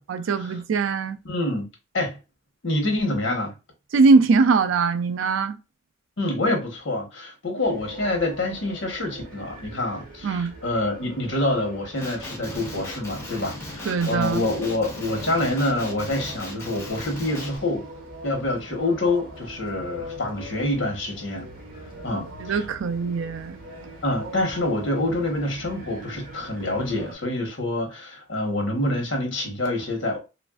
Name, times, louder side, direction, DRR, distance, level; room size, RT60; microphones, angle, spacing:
voice 1, 0.1-1.2 3.9-5.6 10.2-10.5 13.8-14.5 22.4-23.6, right 4 dB, 80° right, 0.4 m, -21 dB
voice 2, 1.2-1.7 1.9-2.2 2.6-3.5 6.2-17.8 18.2-21.5 22.0-22.6 24.0-30.2, left 1 dB, 70° left, 1.1 m, -26 dB
sound 1, 7.6-27.2, equal, 50° right, 1.1 m, -42 dB
Male speech man speaking, 12.0-17.6, left 1 dB, 15° left, 0.6 m, -37 dB
3.2 x 2.5 x 2.3 m
head